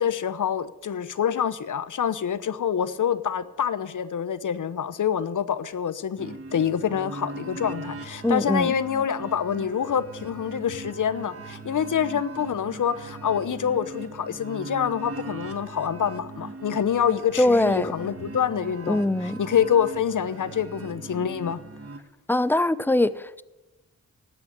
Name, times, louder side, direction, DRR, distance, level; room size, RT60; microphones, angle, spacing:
voice 1, 0.0-21.6, left 8 dB, 60° left, 0.9 m, -26 dB
sound 1, 6.2-22.0, right 3 dB, 40° right, 1.6 m, -40 dB
voice 2, 8.2-8.7 17.4-17.9 18.9-19.4 22.3-23.4, left 1 dB, 5° left, 0.6 m, -22 dB
12.0 x 8.1 x 9.8 m
supercardioid pair, 45°, 34 cm